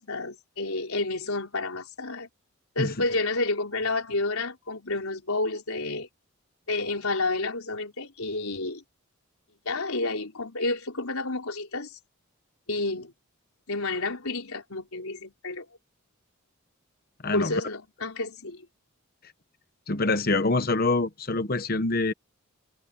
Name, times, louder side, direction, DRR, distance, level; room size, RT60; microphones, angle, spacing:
voice 1, 0.0-2.3 2.8-6.1 6.7-8.8 9.7-11.9 12.7-13.1 13.7-15.7 17.3-18.6, left 2 dB, 80° left, 4.0 m, -30 dB
voice 2, 17.2-17.5 19.9-22.1, left 3 dB, 40° left, 0.9 m, -25 dB
head